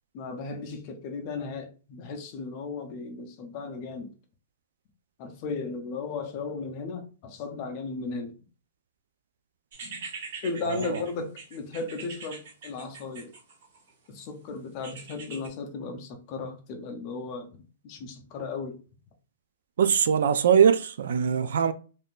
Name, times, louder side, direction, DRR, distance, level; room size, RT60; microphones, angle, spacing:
voice 1, 0.1-4.1 5.2-8.4 10.4-13.3 14.1-18.8, left 4 dB, 30° left, 0.5 m, -35 dB
sound 1, 9.7-13.9 14.8-15.5, right 4 dB, 50° right, 0.9 m, -42 dB
voice 2, 10.6-11.0 19.8-21.7, right 7 dB, 65° right, 0.3 m, -22 dB
3.5 x 2.6 x 2.4 m
hypercardioid pair, 175°, 0 cm